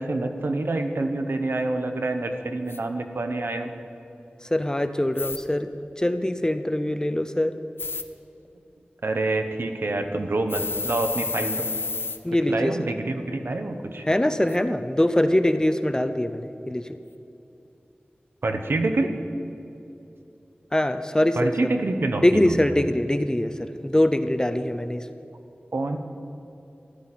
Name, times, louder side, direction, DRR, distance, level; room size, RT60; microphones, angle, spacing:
voice 1, 0.0-3.7 9.0-11.7 12.5-14.0 18.4-19.1 21.3-22.6 25.7-26.0, right 2 dB, 80° right, 6 dB, 0.9 m, -27 dB
sound 1, 2.7-2.8 5.2-5.4 7.8-8.0 10.5-12.2 14.5-14.6, left 4 dB, 85° left, 0.6 m, -30 dB
voice 2, 4.4-5.7 6.0-7.5 12.2-12.8 14.1-16.9 20.7-21.5 22.2-25.1, left 1 dB, 20° left, 10 dB, 0.5 m, -23 dB
14.0 x 11.5 x 4.2 m, 2.8 s
wide cardioid pair, 45°, 4 cm